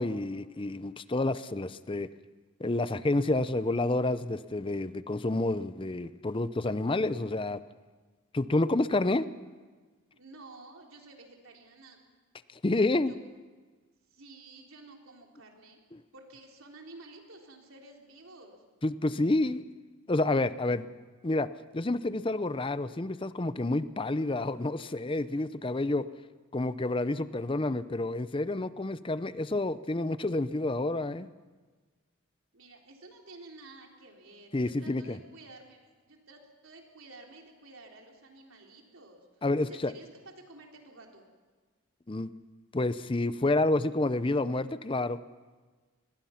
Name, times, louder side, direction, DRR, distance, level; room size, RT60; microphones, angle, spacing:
voice 1, 0.0-2.1 2.6-7.6 8.3-9.3 12.5-13.1 15.9-16.0 18.8-19.6 20.1-20.9 21.2-21.5 21.7-26.1 26.5-31.3 34.5-35.2 39.4-39.9 42.1-42.3 42.7-45.2, left 2 dB, 25° left, 14 dB, 0.5 m, -29 dB
voice 2, 10.1-12.0 13.1-13.2 14.1-15.8 16.1-18.6 32.5-41.2, right 2 dB, 70° right, 1 dB, 3.6 m, -52 dB
25.5 x 21.0 x 5.8 m, 1.4 s
head